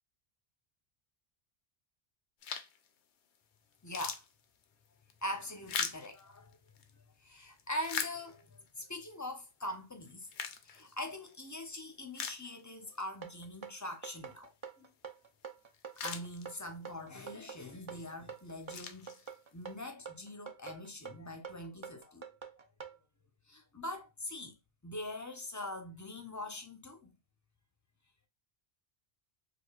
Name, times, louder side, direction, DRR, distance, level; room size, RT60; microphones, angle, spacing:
sound 1, 2.4-2.9 3.3-3.4 3.7-6.9 7.4-8.7 9.2-9.3 10.0-11.4 11.8-11.9 12.1-13.0 13.3-13.4 15.4-15.5 15.7-16.9 17.5-17.8 18.4-19.6, left 7 dB, 90° left, 0.9 m, -41 dB
voice 1, 3.8-4.2 5.2-6.6 7.2-10.3 10.6-14.5 14.8-14.9 16.0-22.3 22.6-22.7 23.5-24.6 24.8-27.1, left 1 dB, 20° left, 0.5 m, -43 dB
sound 2, 13.2-23.0, right 6 dB, 40° right, 0.4 m, -46 dB
4.8 x 2.4 x 2.3 m
omnidirectional pair, 1.1 m